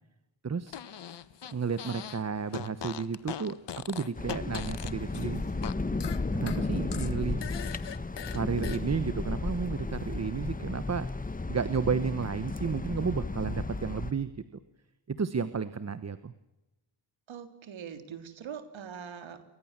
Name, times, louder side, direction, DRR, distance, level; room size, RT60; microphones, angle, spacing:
voice 1, 0.4-0.8 1.5-5.4 6.3-7.5 8.3-14.3 15.1-16.3, right 6 dB, 35° right, 13 dB, 1.2 m, -32 dB
Fart, 0.7-2.2 2.5-5.7 6.0-8.8, left 9 dB, 65° left, 1.4 m, -40 dB
sound 1, 4.2-14.1, left 3 dB, 20° left, 1.4 m, -34 dB
voice 2, 17.3-19.4, right 7 dB, 85° right, 9 dB, 3.6 m, -42 dB
30.0 x 24.0 x 7.5 m, 0.94 s
wide cardioid pair, 120°, 45 cm